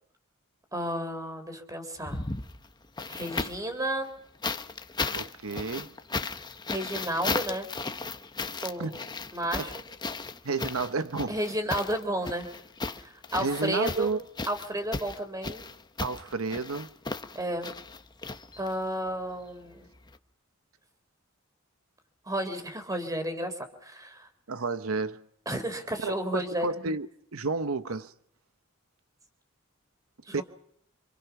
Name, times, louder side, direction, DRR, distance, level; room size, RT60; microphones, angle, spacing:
voice 1, 0.7-2.2 3.1-4.1 6.7-7.7 8.6-8.9 9.3-9.7 11.3-12.5 13.0-14.1 14.5-15.7 17.3-17.7 18.6-19.9 22.3-24.3 25.5-26.7 30.3-30.4, right 1 dB, 15° right, 3.7 m, -32 dB
sound 1, 2.0-3.7 4.4-18.9 20.1-20.2, left 3 dB, 20° left, 1.1 m, -35 dB
voice 2, 5.1-5.9 8.8-8.9 9.6-9.7 10.4-11.4 13.4-14.2 16.0-16.9 24.5-25.2 26.0-28.1 30.3-30.4, right 4 dB, 85° right, 0.9 m, -31 dB
26.5 x 26.5 x 5.9 m
head